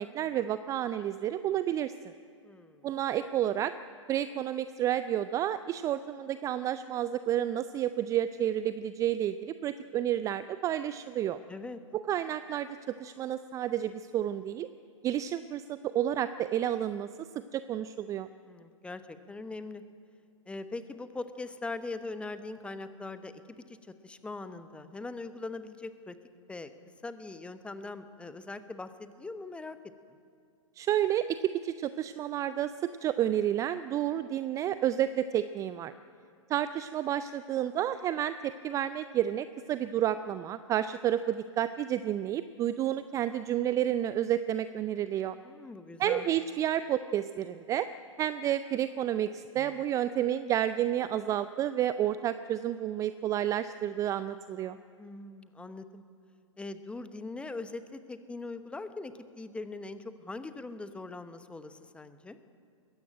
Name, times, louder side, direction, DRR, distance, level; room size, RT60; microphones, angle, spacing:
voice 1, 0.0-2.1 2.8-3.7 4.1-11.4 11.9-14.7 15.0-18.3 30.8-35.9 36.5-45.3 46.0-47.9 48.2-54.8, right 11 dB, 20° right, 13 dB, 0.4 m, -30 dB
voice 2, 2.4-2.9 11.5-11.8 18.4-19.8 20.5-23.4 23.7-26.2 26.5-26.7 27.0-29.8 45.4-46.3 55.0-56.0 56.6-62.4, left 3 dB, 5° left, 11 dB, 1.0 m, -41 dB
21.0 x 16.0 x 8.9 m, 2.5 s
figure-of-eight pair, 115°, 17 cm